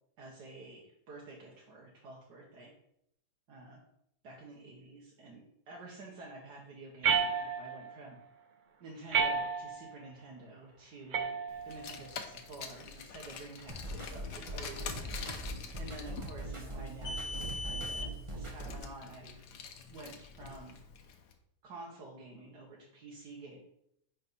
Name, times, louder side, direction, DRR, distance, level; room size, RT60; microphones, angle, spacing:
voice 1, 0.2-2.7 3.5-3.8 4.2-8.2 8.8-11.4 11.7-15.5 15.8-19.4 19.9-20.8 21.6-23.6, right 2 dB, 85° right, -3 dB, 1.8 m, -50 dB
sound 1, 7.0-7.9 9.1-9.9 11.1-11.9, right 6 dB, 65° right, 0.5 m, -31 dB
Car, 11.6-21.1, left 4 dB, 85° left, 1.4 m, -43 dB
sound 2, 13.7-18.8, right 1 dB, 20° right, 1.3 m, -41 dB
10.0 x 4.3 x 4.1 m, 0.76 s
omnidirectional pair, 1.7 m